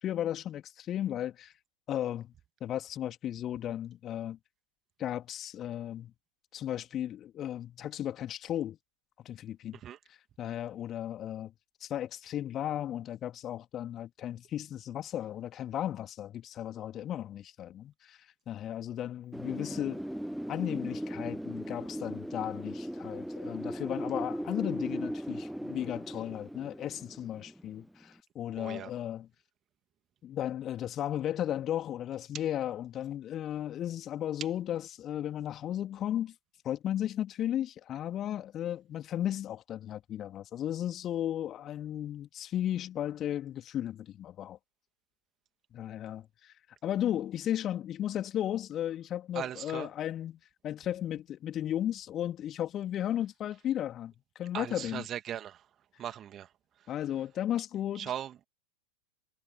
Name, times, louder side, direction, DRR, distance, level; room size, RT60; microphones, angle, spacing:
voice 1, 0.0-1.5 1.9-2.3 2.6-4.4 5.0-6.1 6.5-8.8 9.2-9.8 10.4-11.5 11.8-18.2 18.5-20.0 20.5-29.3 30.2-36.3 36.6-44.6 45.7-46.5 46.8-55.0 56.9-58.1, left 11 dB, 30° left, 3.3 m, -35 dB
Wind, 19.3-28.0, equal, ahead, 0.6 m, -38 dB
voice 2, 28.5-28.9 49.3-49.9 54.5-55.7 56.0-56.5 56.8-56.9 57.9-58.4, right 10 dB, 30° right, 2.8 m, -39 dB
figure-of-eight pair, 90°, 0 cm